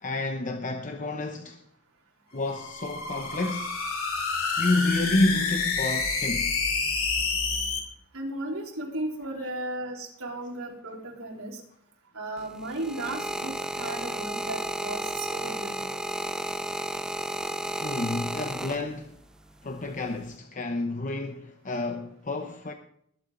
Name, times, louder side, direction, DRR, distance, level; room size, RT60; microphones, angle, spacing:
voice 1, 0.0-1.6 2.3-3.7 4.6-6.5 17.8-19.1 19.6-22.7, left 2 dB, 35° left, 0.8 m, -29 dB
sound 1, 2.4-7.8, left 4 dB, 70° left, 2.7 m, -28 dB
voice 2, 8.1-11.5 12.1-15.9, right 1 dB, 75° right, 4.1 m, -35 dB
sound 2, 12.4-19.2 20.0-20.4, right 1 dB, 5° right, 0.4 m, -33 dB
20.0 x 8.4 x 3.9 m
head